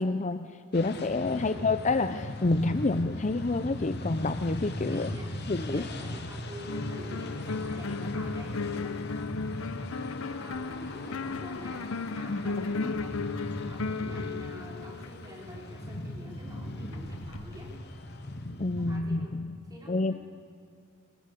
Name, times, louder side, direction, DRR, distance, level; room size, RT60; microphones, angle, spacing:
voice 1, 0.0-5.1 5.5-5.9 12.3-12.9 13.6-13.7 18.6-19.6 19.9-20.1, left 3 dB, 35° left, 11 dB, 0.6 m, -29 dB
sound 1, 0.7-19.0, left 1 dB, 50° left, 2.1 m, -39 dB
voice 2, 1.4-1.7 4.9-5.3 5.7-9.0 9.9-17.8 18.8-19.3 19.6-20.1, equal, 20° right, -2 dB, 4.2 m, -47 dB
sound 2, 6.7-15.7 16.9-17.8, left 4 dB, 75° left, 0.8 m, -35 dB
23.5 x 20.0 x 8.4 m, 2.3 s
head